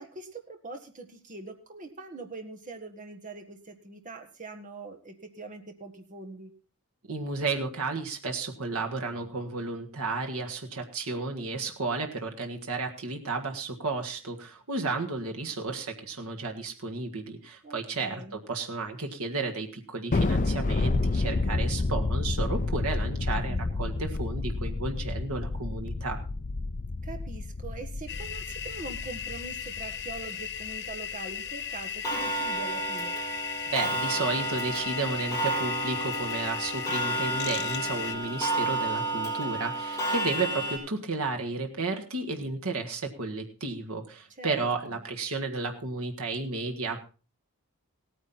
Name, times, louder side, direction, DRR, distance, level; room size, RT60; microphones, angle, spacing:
voice 1, 0.0-6.5 17.6-18.4 23.4-23.8 27.0-33.1 44.4-45.0, right 3 dB, 35° right, 4 dB, 1.6 m, -43 dB
voice 2, 7.1-26.2 33.7-47.0, right 3 dB, 70° right, 3 dB, 1.7 m, -33 dB
Thunder, 20.1-30.8, left 3 dB, 35° left, 0.5 m, -30 dB
sound 1, 28.1-38.2, left 8 dB, 50° left, 1.0 m, -36 dB
Clock, 32.0-40.8, right 1 dB, 15° left, 4.4 m, -31 dB
17.0 x 9.5 x 4.3 m, 0.36 s
head